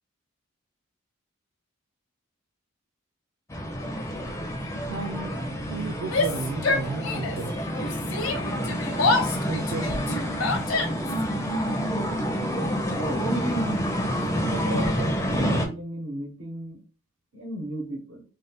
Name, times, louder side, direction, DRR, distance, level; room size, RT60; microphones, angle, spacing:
sound 1, 3.5-15.7, equal, 15° left, 0.4 m, -28 dB
voice 1, 4.9-7.6 9.4-10.3, right 3 dB, 50° right, 3 dB, 0.3 m, -34 dB
Yell, 6.0-7.5 7.8-11.2, left 3 dB, 75° left, 0.7 m, -27 dB
voice 2, 12.9-13.8 14.4-16.8 17.3-18.2, equal, 70° right, 2 dB, 1.0 m, -33 dB
2.6 x 2.3 x 3.4 m, 0.36 s
head